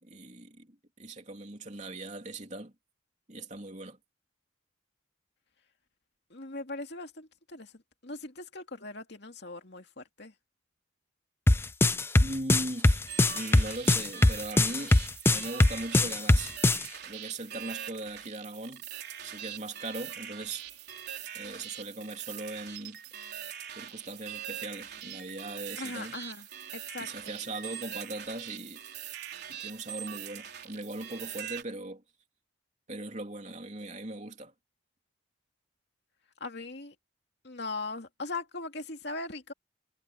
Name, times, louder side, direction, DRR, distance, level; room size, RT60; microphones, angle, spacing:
voice 1, 0.0-2.7 3.3-4.0 12.2-13.0 13.3-15.0 15.3-16.5 17.0-18.8 19.2-20.7 21.3-23.0 23.8-26.2 27.0-28.8 29.5-32.0 32.9-34.5, right 2 dB, 35° right, 3.3 m, -39 dB
voice 2, 6.3-10.3 25.8-26.5 26.7-27.4 36.4-36.9 37.4-39.5, left 3 dB, 55° left, 2.7 m, -40 dB
sound 1, 11.5-16.8, left 2 dB, 10° left, 0.4 m, -22 dB
sound 2, 13.1-31.6, right 10 dB, 50° right, 4.3 m, -42 dB
head